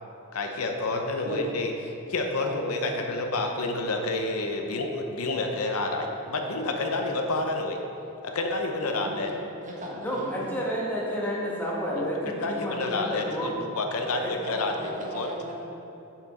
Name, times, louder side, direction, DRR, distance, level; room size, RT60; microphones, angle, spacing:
voice 1, 0.3-1.7 2.1-7.8 8.2-9.3 12.0-14.7 15.1-15.3, left 2 dB, 80° left, 3 dB, 0.7 m, -29 dB
voice 2, 2.4-3.2 6.6-7.0 8.8-9.3 9.6-10.5 14.4-15.5, equal, 35° right, -3 dB, 1.2 m, -38 dB
voice 3, 10.0-13.5 14.2-14.3, equal, 10° left, -5 dB, 1.2 m, -30 dB
6.6 x 5.9 x 4.2 m, 3.0 s
head